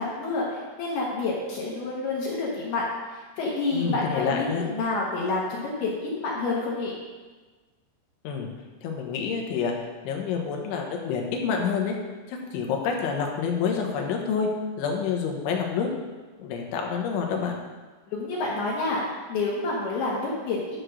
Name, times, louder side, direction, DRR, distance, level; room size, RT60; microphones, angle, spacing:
voice 1, 0.0-2.9 3.1-7.0 18.1-19.0 19.3-20.8, left 3 dB, 65° left, -5 dB, 2.9 m, -28 dB
voice 2, 3.7-4.7 8.3-8.5 8.8-12.0 12.3-14.5 14.8-15.9 16.4-17.6, left 6 dB, 90° left, 1 dB, 3.6 m, -28 dB
11.5 x 5.0 x 6.4 m, 1.3 s
omnidirectional pair, 5.3 m